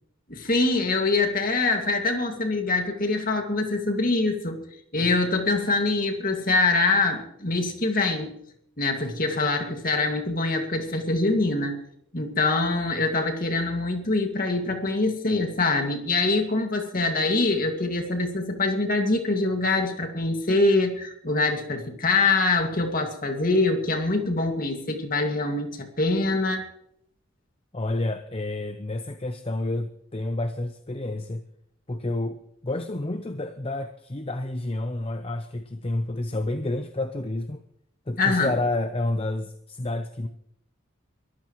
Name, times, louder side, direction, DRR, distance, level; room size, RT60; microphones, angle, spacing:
voice 1, 0.3-4.6 4.9-8.4 8.8-11.8 12.1-26.6 38.2-38.5, left 3 dB, 45° left, 4 dB, 2.2 m, -24 dB
voice 2, 27.7-31.4 31.9-37.6 38.1-40.3, left 2 dB, 30° left, 8 dB, 0.7 m, -29 dB
22.5 x 14.5 x 3.1 m, 0.71 s
head